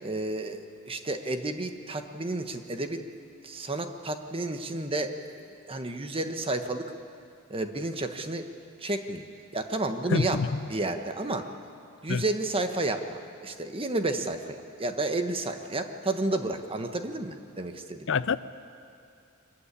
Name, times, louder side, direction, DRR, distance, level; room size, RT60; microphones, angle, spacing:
voice 1, 0.0-3.0 3.4-6.9 7.5-8.5 8.8-9.2 9.5-10.4 10.7-11.5 12.0-18.1, right 2 dB, 25° right, 7 dB, 1.2 m, -31 dB
voice 2, 10.1-10.5 12.1-12.2 18.1-18.4, left 5 dB, 60° left, 15 dB, 0.5 m, -25 dB
23.0 x 15.0 x 9.8 m, 2.5 s
head